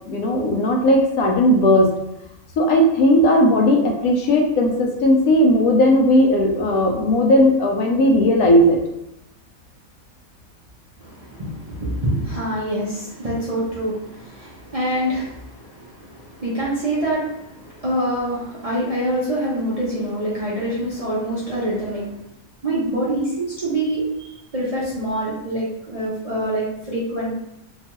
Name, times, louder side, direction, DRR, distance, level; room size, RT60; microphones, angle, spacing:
voice 1, 0.1-2.0 2.6-8.8, left 1 dB, 90° left, 1 dB, 1.1 m, -16 dB
voice 2, 11.0-22.2 22.6-27.3, right 1 dB, 45° right, -9 dB, 0.4 m, -25 dB
2.9 x 2.3 x 2.9 m, 0.83 s
omnidirectional pair, 1.5 m